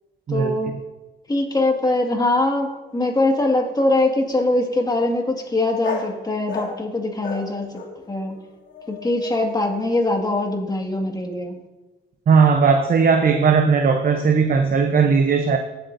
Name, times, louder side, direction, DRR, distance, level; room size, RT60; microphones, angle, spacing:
voice 1, 0.3-0.7 1.3-7.8 8.1-8.4 8.9-11.6, left 2 dB, 20° left, 2 dB, 2.0 m, -22 dB
sound 1, 2.9-3.0 3.3-4.0 5.8-6.2 6.5-6.8 7.2-9.6, left 5 dB, 75° left, 2.6 m, -35 dB
voice 2, 12.3-15.6, right 5 dB, 45° right, 5 dB, 0.8 m, -17 dB
19.0 x 7.9 x 2.7 m, 1.1 s
cardioid pair, 90°, 20 cm